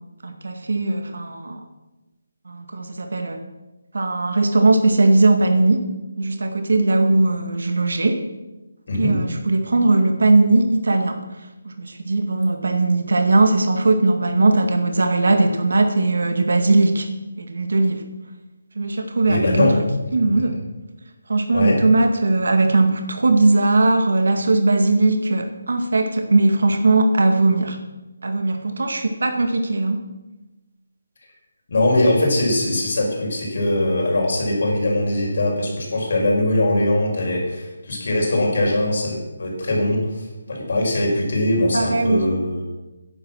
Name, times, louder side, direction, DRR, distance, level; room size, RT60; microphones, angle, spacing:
voice 1, 0.2-1.6 2.5-3.4 3.9-5.8 6.2-8.2 8.9-11.2 11.6-17.1 17.4-18.0 18.8-19.7 20.1-20.6 21.3-27.8 28.2-30.0 41.7-42.2, right 2 dB, 70° right, 5 dB, 2.1 m, -19 dB
voice 2, 19.3-19.7 21.5-21.8 31.7-42.6, left 1 dB, 50° left, -1 dB, 6.0 m, -21 dB
14.0 x 10.5 x 6.4 m, 1.1 s
hypercardioid pair, 175°, 0 cm